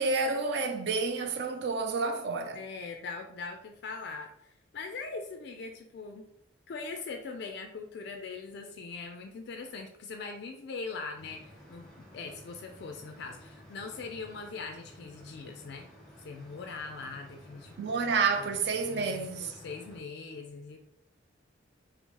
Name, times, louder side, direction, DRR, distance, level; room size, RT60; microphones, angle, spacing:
voice 1, 0.0-2.6 17.8-19.6, right 4 dB, 55° right, 0.3 m, -29 dB
voice 2, 2.5-6.2 6.7-11.9 12.1-15.9 16.2-17.8 18.4-18.5 18.9-20.8, left 4 dB, 55° left, 0.3 m, -41 dB
sound 1, 11.2-20.0, equal, ahead, 0.8 m, -53 dB
4.4 x 2.0 x 2.9 m
head